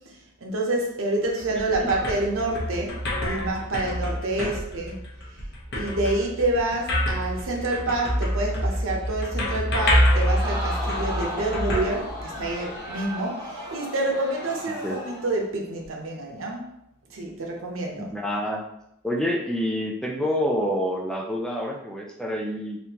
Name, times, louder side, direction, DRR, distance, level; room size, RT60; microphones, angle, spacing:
voice 1, 0.4-5.0 5.7-16.7 17.1-18.1, right 2 dB, 70° right, 0 dB, 0.7 m, -28 dB
sound 1, 1.2-12.7, equal, 55° left, 0.8 m, -27 dB
Crowd, 9.9-15.4 15.8-15.9, left 1 dB, 20° right, 0.8 m, -35 dB
voice 2, 18.0-18.6 19.0-22.8, equal, 5° left, -1 dB, 0.3 m, -27 dB
3.4 x 2.8 x 2.9 m, 0.78 s
head